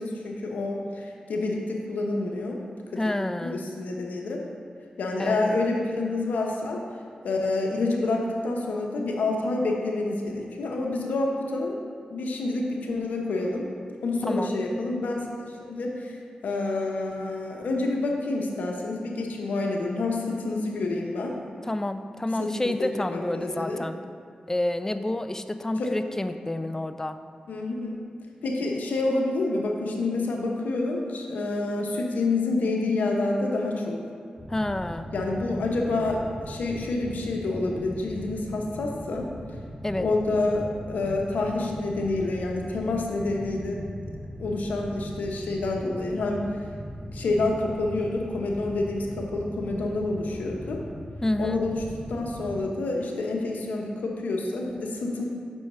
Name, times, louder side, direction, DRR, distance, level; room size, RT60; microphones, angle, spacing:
voice 1, 0.0-2.6 2.9-3.0 3.4-4.4 5.0-6.8 7.2-11.7 12.1-13.7 14.0-16.2 16.4-21.3 22.4-23.8 25.8-25.9 27.5-28.0 28.4-34.0 35.1-39.3 40.0-43.8 44.4-46.4 47.1-50.8 51.4-51.8 52.1-55.2, left 2 dB, 85° left, 0 dB, 0.9 m, -28 dB
voice 2, 3.0-3.6 5.2-5.3 14.3-14.6 21.6-24.0 24.5-27.2 34.5-35.1 39.8-40.1 51.2-51.6, left 1 dB, 20° left, 9 dB, 0.4 m, -29 dB
sound 1, 34.4-52.6, equal, 5° right, 1.7 m, -40 dB
6.2 x 4.6 x 5.4 m, 2.2 s
cardioid pair, 50°, 3 cm